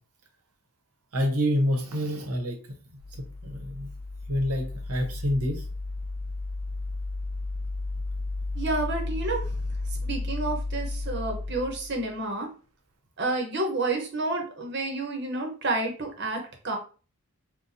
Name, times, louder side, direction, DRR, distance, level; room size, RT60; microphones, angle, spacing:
voice 1, 1.1-2.6 3.1-3.9 4.3-5.6, equal, 90° right, 3 dB, 0.9 m, -27 dB
sound 1, 3.0-12.1, left 2 dB, 70° right, 0.5 m, -33 dB
voice 2, 8.5-9.5 10.0-12.5 13.2-16.4 16.6-16.8, right 2 dB, 50° right, 3 dB, 0.8 m, -29 dB
4.1 x 2.2 x 2.6 m, 0.37 s
head